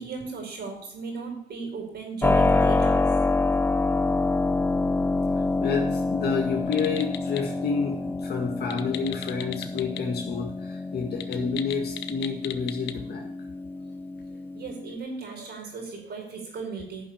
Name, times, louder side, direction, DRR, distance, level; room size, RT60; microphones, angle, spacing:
voice 1, 0.0-3.1 13.8-13.9 14.3-17.0, right 4 dB, 65° right, 3 dB, 4.8 m, -36 dB
Keyboard (musical), 2.2-14.9, left 3 dB, 10° left, 0.9 m, -27 dB
voice 2, 5.6-13.3, left 5 dB, 60° left, 0 dB, 1.8 m, -29 dB
sound 1, 6.7-7.4 8.6-10.0 10.3-10.4 11.1-13.0, left 12 dB, 85° left, 0.8 m, -37 dB
11.0 x 5.8 x 8.6 m, 0.70 s
supercardioid pair, 60°, 18 cm